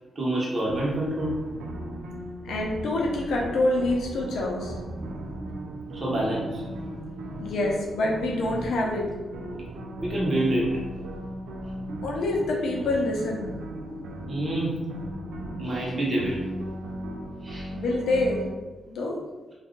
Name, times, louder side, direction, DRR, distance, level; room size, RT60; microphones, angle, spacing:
voice 1, 0.2-1.4 6.0-6.6 10.0-10.9 14.3-14.9 15.3-16.4 17.4-17.7, right 1 dB, 35° right, -4 dB, 1.1 m, -27 dB
sound 1, 0.7-18.5, right 1 dB, 80° right, 0.5 m, -37 dB
voice 2, 2.4-4.8 7.4-9.1 12.0-13.5 17.7-18.4 18.9-19.2, left 2 dB, 80° left, -2 dB, 0.7 m, -26 dB
2.6 x 2.4 x 3.8 m, 1.1 s
cardioid pair, 95°, 0 cm